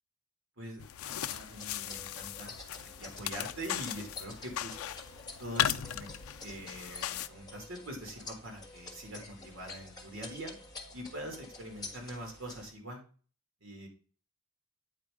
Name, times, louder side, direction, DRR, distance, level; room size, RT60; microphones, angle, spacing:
voice 1, 0.6-2.5 3.0-4.8 5.4-6.1 6.4-10.6 10.9-13.0 13.6-13.9, right 1 dB, 65° right, 2 dB, 2.3 m, -43 dB
sound 1, 0.8-7.3, left 11 dB, 80° left, 0.4 m, -37 dB
sound 2, 1.3-12.7, left 3 dB, 20° left, 1.4 m, -49 dB
8.9 x 4.5 x 3.6 m, 0.39 s
head